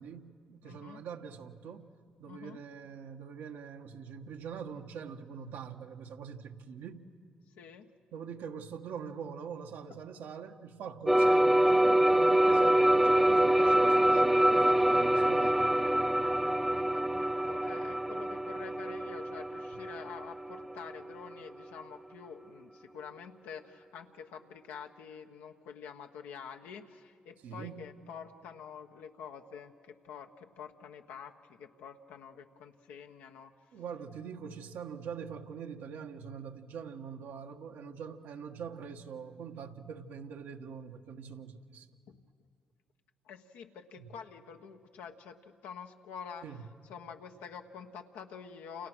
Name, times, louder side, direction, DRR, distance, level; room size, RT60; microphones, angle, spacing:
voice 1, 0.0-1.9 2.2-7.0 8.1-15.7 27.4-27.8 33.7-41.9 46.4-46.6, right 6 dB, 80° right, 4 dB, 1.4 m, -43 dB
voice 2, 0.6-1.0 2.3-2.6 7.6-7.9 16.7-33.5 42.1-42.2 43.2-46.4 46.9-48.9, left 7 dB, 90° left, 4 dB, 1.4 m, -47 dB
sound 1, 11.1-20.9, right 1 dB, 5° right, 0.8 m, -25 dB
29.0 x 28.5 x 6.2 m, 2.2 s
supercardioid pair, 60°, 3 cm